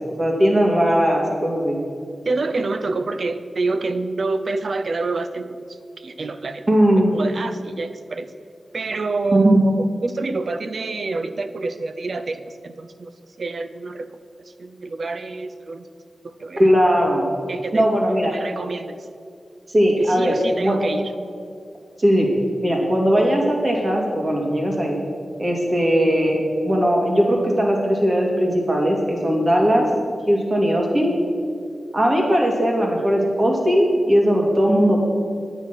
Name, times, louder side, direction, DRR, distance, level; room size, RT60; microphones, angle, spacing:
voice 1, 0.2-1.8 6.7-7.1 9.3-9.6 16.6-17.2 17.7-18.3 19.7-20.8 22.0-22.3 22.6-25.0 25.4-26.4 26.6-29.9 30.3-31.1 31.9-35.0, equal, 35° right, 0 dB, 2.4 m, -18 dB
voice 2, 2.2-5.6 6.0-6.7 7.1-8.3 8.7-13.1 13.4-14.1 14.4-15.9 16.2-16.6 17.5-17.9 18.3-19.1 20.0-21.1, right 3 dB, 65° right, 10 dB, 0.6 m, -27 dB
9.8 x 9.1 x 6.1 m, 2.2 s
wide cardioid pair, 85°, 0 cm